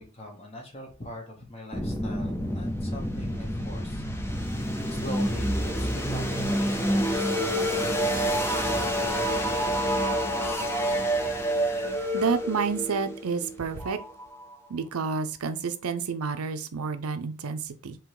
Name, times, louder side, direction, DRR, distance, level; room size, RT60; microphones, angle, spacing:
voice 1, 0.0-4.0 4.9-9.5, left 1 dB, 30° left, 1 dB, 1.2 m, -43 dB
sound 1, 1.7-14.5, equal, 10° left, 0.6 m, -28 dB
voice 2, 12.1-14.0 14.7-18.0, right 5 dB, 90° right, 10 dB, 0.6 m, -29 dB
3.7 x 3.0 x 4.7 m, 0.35 s
head